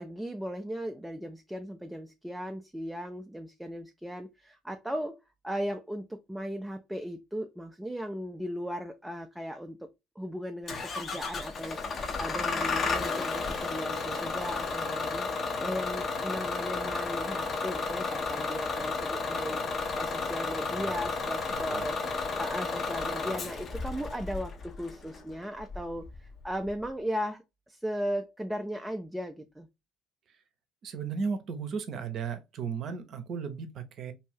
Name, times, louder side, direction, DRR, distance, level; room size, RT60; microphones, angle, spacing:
voice 1, 0.0-5.2 5.4-9.9 10.2-29.7, equal, 5° right, 0.5 m, -37 dB
Bus / Engine starting, 10.7-26.9, left 4 dB, 45° left, 0.8 m, -33 dB
voice 2, 21.5-21.8 30.8-34.1, right 5 dB, 55° right, 0.7 m, -35 dB
2.7 x 2.6 x 3.4 m
hypercardioid pair, 60°, 0 cm